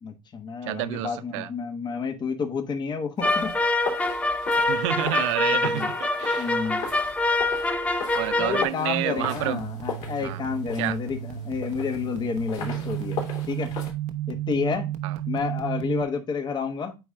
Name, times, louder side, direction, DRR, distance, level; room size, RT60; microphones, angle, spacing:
voice 1, 0.0-3.5 5.5-5.9 6.3-6.8 8.4-13.2 13.5-13.7 14.3-14.9 15.3-17.0, left 5 dB, 25° left, 1.2 m, -30 dB
voice 2, 0.6-1.5 4.6-6.5 6.9-7.0 8.1-9.6 10.2-10.4 10.8-11.0 15.0-15.2, right 16 dB, 70° right, 0.6 m, -29 dB
sound 1, 3.2-13.9, left 6 dB, 50° left, 2.9 m, -38 dB
sound 2, 3.2-8.6, left 2 dB, 10° left, 0.6 m, -25 dB
sound 3, 9.2-16.0, right 11 dB, 45° right, 1.0 m, -33 dB
9.1 x 3.1 x 3.5 m
supercardioid pair, 110°, 17 cm